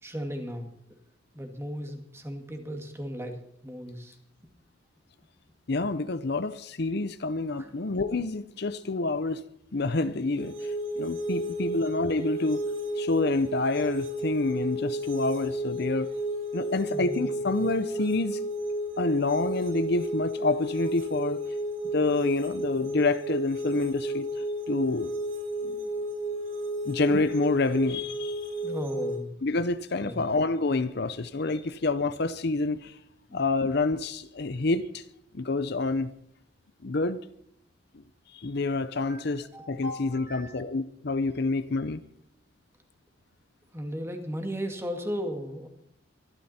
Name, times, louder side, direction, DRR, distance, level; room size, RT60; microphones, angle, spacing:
voice 1, 0.0-0.7 1.3-4.2 7.6-7.8 16.9-17.4 28.6-29.3 30.0-30.3 33.3-33.4 39.1-40.7 43.7-45.7, equal, 15° right, 2.1 m, -36 dB
voice 2, 5.7-9.4 9.7-12.6 13.0-16.1 16.5-18.4 19.0-21.4 21.9-25.1 25.6-25.9 26.8-28.5 29.4-32.9 33.3-35.0 35.3-36.1 36.8-37.2 38.3-42.0, left 3 dB, 55° left, 0.7 m, -28 dB
sound 1, 10.4-29.2, right 1 dB, 90° right, 3.6 m, -32 dB
23.5 x 12.5 x 4.3 m
head